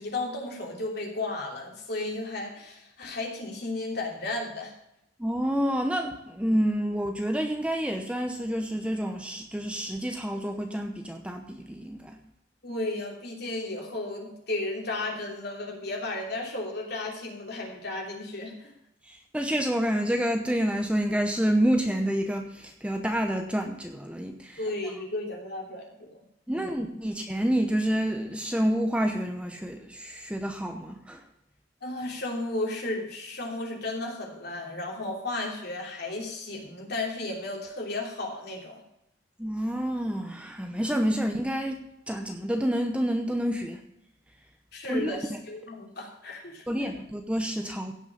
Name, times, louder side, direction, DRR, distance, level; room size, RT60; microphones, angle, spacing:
voice 1, 0.0-4.7 12.6-18.7 24.6-26.2 26.5-26.9 31.8-38.8 44.7-46.9, left 2 dB, 55° left, 0 dB, 3.1 m, -34 dB
voice 2, 5.2-12.2 19.1-24.6 26.5-31.2 39.4-43.8 44.9-45.1 46.7-47.9, equal, 5° right, 4 dB, 0.9 m, -28 dB
16.5 x 6.1 x 5.3 m, 0.80 s
head